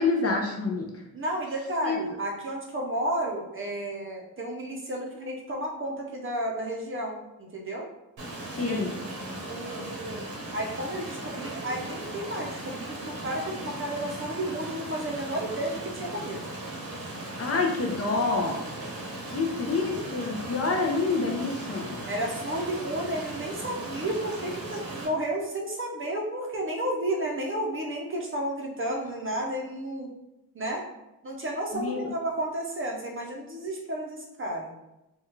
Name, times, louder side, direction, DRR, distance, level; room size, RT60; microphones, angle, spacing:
voice 1, 0.0-1.0 1.8-2.0 8.5-8.9 17.4-18.6 19.3-22.0 31.7-32.1, left 4 dB, 40° left, 0 dB, 0.5 m, -27 dB
voice 2, 1.1-7.2 7.5-7.9 8.5-8.8 9.5-16.4 22.1-30.1 30.5-30.8 31.2-34.7, right 1 dB, 35° right, -1 dB, 0.5 m, -32 dB
Stream, 8.2-25.1, right 1 dB, 90° right, 0.9 m, -38 dB
3.5 x 2.2 x 3.0 m, 0.94 s
wide cardioid pair, 165°, 36 cm